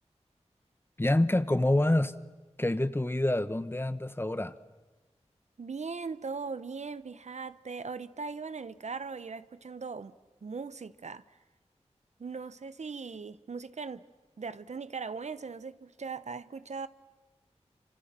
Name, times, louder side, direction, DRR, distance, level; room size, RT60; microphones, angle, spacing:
voice 1, 1.0-2.1 2.6-4.5, left 1 dB, 20° left, 14 dB, 1.1 m, -27 dB
voice 2, 5.6-10.2 10.4-11.2 12.2-14.0 14.4-16.9, right 4 dB, 80° right, 14 dB, 0.9 m, -39 dB
28.5 x 26.0 x 7.5 m, 1.2 s
wide cardioid pair, 70°, 12 cm